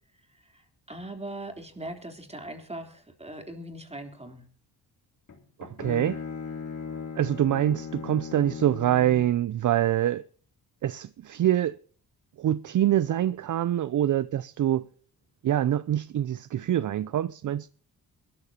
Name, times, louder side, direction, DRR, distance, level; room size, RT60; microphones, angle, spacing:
voice 1, 0.3-4.5, right 1 dB, 15° right, 3.6 m, -40 dB
Bowed string instrument, 5.3-9.4, left 6 dB, 50° left, 3.4 m, -38 dB
voice 2, 5.6-6.2 7.2-10.2 10.8-11.8 12.4-14.9 15.4-17.7, right 11 dB, 50° right, 0.5 m, -25 dB
23.0 x 13.5 x 2.9 m
cardioid pair, 75°, 39 cm